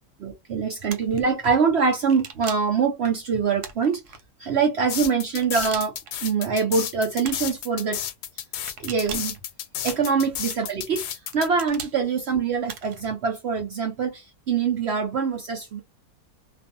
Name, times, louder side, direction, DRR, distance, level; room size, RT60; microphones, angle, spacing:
voice 1, 0.2-4.0 4.4-5.9 6.2-8.0 8.8-9.3 9.8-11.0 11.3-15.8, right 5 dB, 65° right, 0.6 m, -24 dB
sound 1, 0.9-1.2 2.1-2.8 3.6-4.2 5.4-6.1 7.2-7.6 8.7-9.4 9.9-10.4 11.3-12.0 12.7-13.1, right 7 dB, 90° right, 1.2 m, -39 dB
sound 2, 4.9-11.5, left 10 dB, 85° left, 1.1 m, -32 dB
2.5 x 2.3 x 2.6 m
omnidirectional pair, 1.7 m